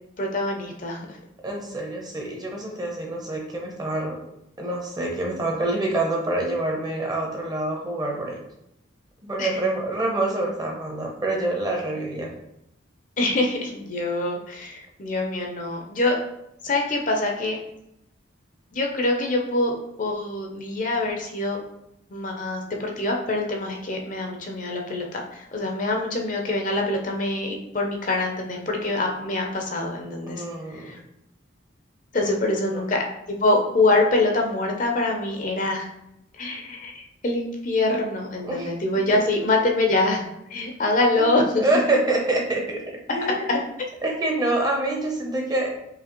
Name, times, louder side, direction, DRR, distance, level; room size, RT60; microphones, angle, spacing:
voice 1, 0.2-1.2 9.4-9.6 13.2-16.2 16.6-17.6 18.7-21.6 22.1-30.4 30.7-31.0 32.1-35.9 36.4-41.6 43.5-43.6, left 2 dB, 40° left, 1 dB, 0.6 m, -25 dB
voice 2, 1.4-4.2 4.6-8.4 9.2-12.3 30.3-31.0 32.2-32.8 38.5-38.7 41.2-41.3 41.6-42.8 43.1-43.6 44.0-45.7, right 2 dB, 20° right, -1 dB, 0.7 m, -26 dB
4.8 x 2.8 x 3.0 m, 0.82 s
head